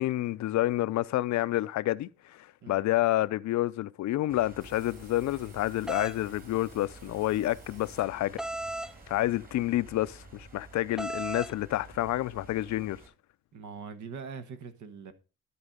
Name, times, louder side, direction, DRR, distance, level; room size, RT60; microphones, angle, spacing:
voice 1, 0.0-8.4 9.1-13.0, left 15 dB, 65° left, 0.5 m, -29 dB
sound 1, 4.3-13.1, right 3 dB, 30° right, 2.3 m, -51 dB
sound 2, 4.6-8.6, right 3 dB, 55° right, 3.2 m, -59 dB
sound 3, 5.9-6.2 8.4-8.9 11.0-11.5, right 1 dB, ahead, 0.4 m, -35 dB
voice 2, 13.5-15.1, right 5 dB, 75° right, 1.3 m, -42 dB
12.0 x 4.4 x 5.0 m
cardioid pair, 90°, 30 cm